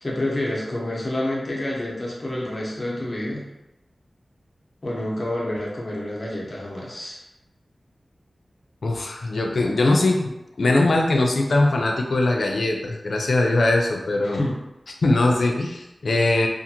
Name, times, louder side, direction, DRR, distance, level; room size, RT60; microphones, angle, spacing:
voice 1, 0.0-3.5 4.8-7.2 14.3-14.6, left 1 dB, 40° left, -4 dB, 0.8 m, -28 dB
voice 2, 8.8-14.4 15.0-16.5, left 2 dB, 80° left, 2 dB, 0.4 m, -21 dB
2.5 x 2.4 x 2.8 m, 0.95 s
wide cardioid pair, 70°, 0 cm